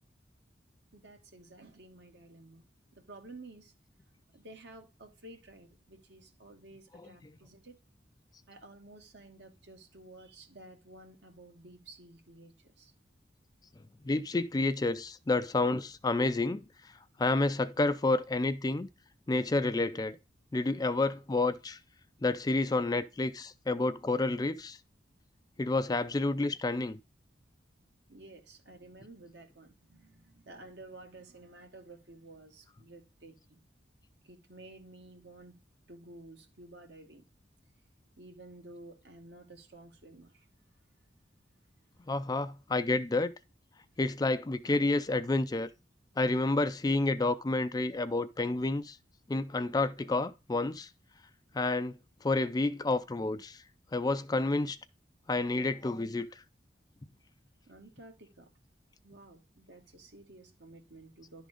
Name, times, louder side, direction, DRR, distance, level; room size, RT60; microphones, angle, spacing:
voice 1, 0.9-2.7 2.9-3.7 4.3-7.8 8.5-12.9 28.1-33.6 34.2-35.6 35.9-37.2 38.2-40.5 57.7-58.5 59.0-61.5, right 2 dB, 65° right, 1.9 m, -52 dB
voice 2, 14.1-16.6 17.2-18.9 19.3-20.2 20.5-21.8 22.2-24.8 25.6-27.0 42.1-43.3 44.0-45.7 46.2-49.0 49.3-50.9 51.5-51.9 52.2-53.6 53.9-54.8 55.3-56.3, left 2 dB, 20° left, 0.4 m, -29 dB
11.0 x 3.8 x 4.9 m
head